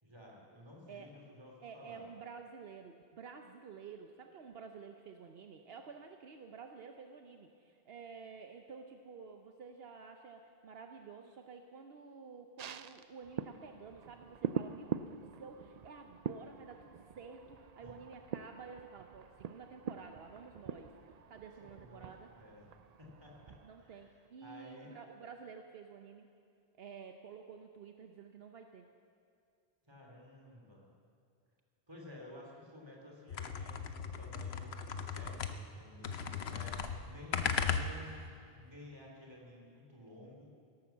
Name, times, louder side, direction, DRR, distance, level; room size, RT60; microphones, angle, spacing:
voice 1, 0.0-2.1 17.8-17.9 21.6-22.7 23.0-25.0 29.8-30.9 31.9-40.5, left 1 dB, 25° right, -2 dB, 3.2 m, -54 dB
voice 2, 1.6-22.3 23.6-26.3 26.8-28.8 32.4-32.5, right 5 dB, 75° right, 5 dB, 1.0 m, -51 dB
sound 1, 12.6-24.3 24.6-24.7, right 7 dB, 55° right, 0.5 m, -44 dB
sound 2, 33.3-35.8 36.0-38.3, left 6 dB, 80° left, 1.0 m, -37 dB
16.5 x 12.0 x 7.2 m, 2.3 s
omnidirectional pair, 1.0 m